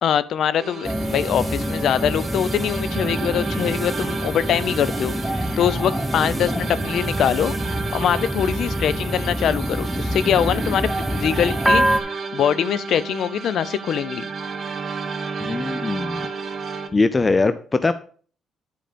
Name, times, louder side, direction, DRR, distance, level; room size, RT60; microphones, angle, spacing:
voice 1, 0.0-7.5 7.9-11.9 12.3-14.3, left 9 dB, 70° left, 17 dB, 0.5 m, -23 dB
sound 1, 0.6-16.9, right 4 dB, 45° right, 1.3 m, -32 dB
sound 2, 0.8-12.0, equal, 5° right, 0.8 m, -26 dB
voice 2, 15.4-16.3 16.9-17.9, left 3 dB, 25° left, 12 dB, 0.5 m, -21 dB
10.0 x 4.9 x 5.1 m, 0.43 s
cardioid pair, 90°, 0 cm